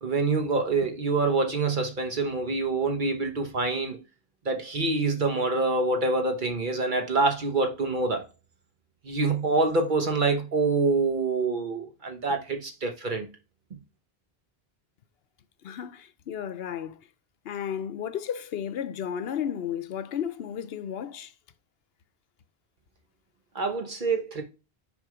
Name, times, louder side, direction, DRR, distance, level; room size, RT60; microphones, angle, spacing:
voice 1, 0.0-4.0 4.4-8.2 9.0-13.3 23.5-24.4, right 3 dB, 50° right, 1.1 m, -26 dB
voice 2, 15.6-17.0 17.4-21.3, left 8 dB, 70° left, 0.8 m, -33 dB
6.4 x 3.6 x 4.9 m
omnidirectional pair, 1.1 m